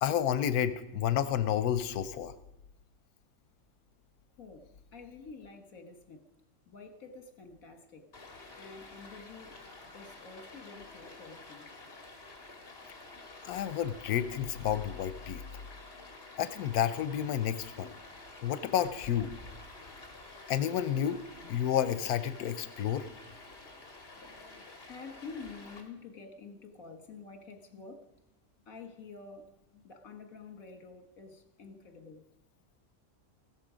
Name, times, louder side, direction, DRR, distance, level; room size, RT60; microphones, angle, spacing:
voice 1, 0.0-2.3 13.4-15.4 16.4-17.9 18.4-19.3 20.5-21.2 21.5-23.1, left 10 dB, 85° left, 13 dB, 1.2 m, -30 dB
voice 2, 4.9-6.2 6.7-8.1 8.6-9.6 9.9-11.7 24.2-28.1 28.7-32.2, left 4 dB, 70° left, 6 dB, 2.0 m, -49 dB
Stream, 8.1-25.8, left 2 dB, 40° left, 2.5 m, -50 dB
16.0 x 13.5 x 5.1 m, 0.93 s
omnidirectional pair, 1.6 m